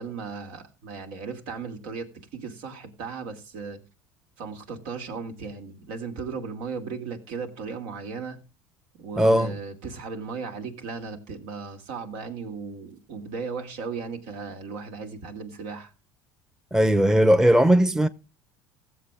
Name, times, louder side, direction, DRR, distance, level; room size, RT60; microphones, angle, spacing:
voice 1, 0.0-2.1 2.3-3.8 4.4-8.4 9.0-15.9, right 5 dB, 75° right, 2.5 m, -36 dB
voice 2, 9.2-9.5 16.7-18.1, equal, 5° right, 0.8 m, -18 dB
16.0 x 7.5 x 3.6 m
supercardioid pair, 95°, 9 cm